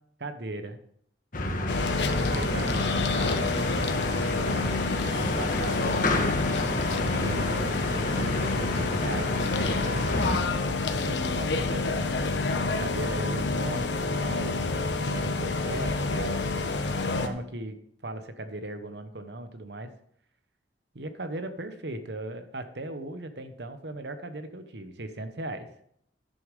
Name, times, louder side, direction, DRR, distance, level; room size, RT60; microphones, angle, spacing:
voice 1, 0.2-0.8 2.0-3.6 4.2-4.9 5.1-5.8 6.9-10.0 10.8-12.1 12.6-16.6 17.1-19.9 20.9-25.7, right 2 dB, 65° right, 9 dB, 1.1 m, -38 dB
sound 1, 1.3-10.4, left 1 dB, 50° left, 1.3 m, -30 dB
sound 2, 1.7-17.3, left 3 dB, 75° left, 1.1 m, -28 dB
11.0 x 6.7 x 5.3 m, 0.68 s
head